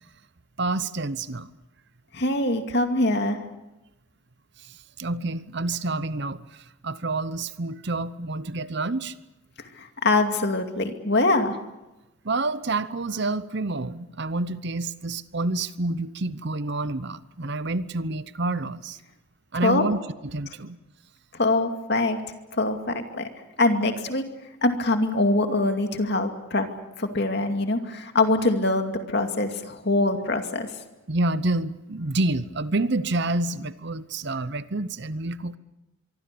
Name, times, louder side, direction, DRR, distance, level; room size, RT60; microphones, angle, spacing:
voice 1, 0.6-1.5 4.6-9.1 12.2-19.0 19.5-20.8 31.1-35.6, right 2 dB, 50° right, 15 dB, 0.8 m, -28 dB
voice 2, 2.1-3.4 9.8-11.6 19.6-19.9 21.3-23.3 23.6-24.2 24.6-26.7 27.0-30.7, left 2 dB, 50° left, 6 dB, 2.5 m, -23 dB
25.0 x 24.0 x 6.9 m, 0.97 s
head